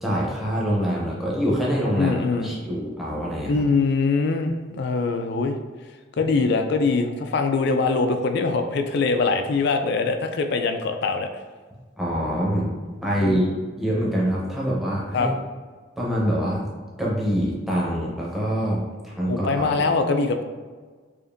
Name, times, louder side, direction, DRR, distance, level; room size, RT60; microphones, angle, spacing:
voice 1, 0.0-2.1 2.4-3.6 12.0-12.7 13.0-13.5 13.8-15.3 16.0-16.6 17.0-19.9, equal, ahead, -5 dB, 0.7 m, -25 dB
voice 2, 2.0-2.5 3.5-5.6 6.2-11.3 13.2-13.4 15.1-15.3 19.2-20.4, left 4 dB, 55° left, 6 dB, 0.3 m, -23 dB
4.9 x 2.5 x 2.5 m, 1.5 s
head